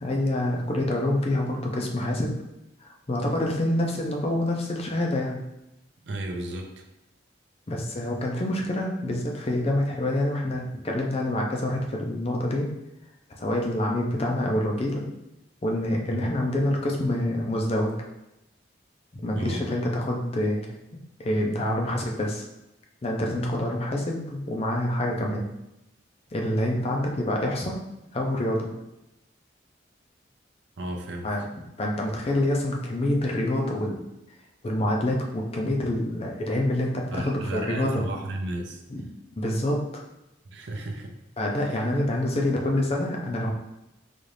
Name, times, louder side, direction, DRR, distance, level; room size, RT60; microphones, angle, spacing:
voice 1, 0.0-2.3 2.8-5.4 7.7-12.7 13.4-15.0 15.6-17.9 19.1-20.7 21.2-22.4 23.0-25.5 26.3-27.8 28.1-28.7 31.2-31.4 31.8-34.0 34.6-38.0 38.9-39.0 39.4-40.0 41.4-43.5, left 1 dB, 30° left, 0 dB, 0.5 m, -26 dB
voice 2, 6.0-6.9 16.0-16.3 19.1-19.6 30.8-31.3 37.1-38.8 40.5-41.2 41.6-41.8, right 1 dB, 70° right, 3 dB, 0.5 m, -33 dB
4.0 x 2.4 x 3.2 m, 0.91 s
head